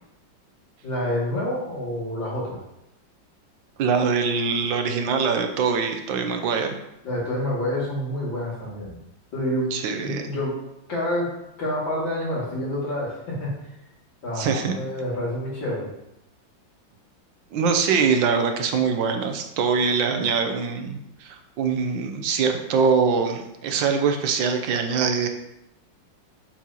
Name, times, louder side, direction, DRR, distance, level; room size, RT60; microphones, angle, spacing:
voice 1, 0.8-2.6 7.0-9.0 9.3-9.7 10.0-10.5 10.9-11.3 11.6-13.5 14.2-15.9, left 1 dB, 90° left, -6 dB, 3.1 m, -28 dB
voice 2, 3.8-6.8 9.7-10.2 14.4-14.8 17.5-25.3, right 5 dB, 85° right, 5 dB, 1.5 m, -23 dB
7.3 x 5.5 x 2.9 m, 0.85 s
omnidirectional pair, 2.0 m